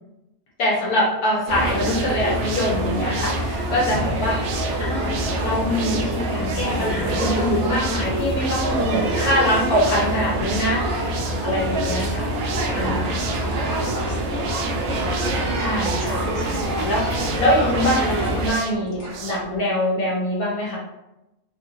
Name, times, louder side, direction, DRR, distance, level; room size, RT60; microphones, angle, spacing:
voice 1, 0.6-4.4 4.8-5.1 5.4-11.1 11.4-12.3 12.7-13.2 15.6-20.8, left 1 dB, 70° left, -5 dB, 1.4 m, -24 dB
sound 1, 1.5-18.5, right 1 dB, 60° right, 0.8 m, -25 dB
sound 2, 1.5-19.6, right 4 dB, 85° right, 1.1 m, -35 dB
voice 2, 11.3-15.6 16.7-17.3 19.0-19.3, equal, 30° left, -7 dB, 1.1 m, -41 dB
3.4 x 2.4 x 3.0 m, 0.93 s
omnidirectional pair, 1.6 m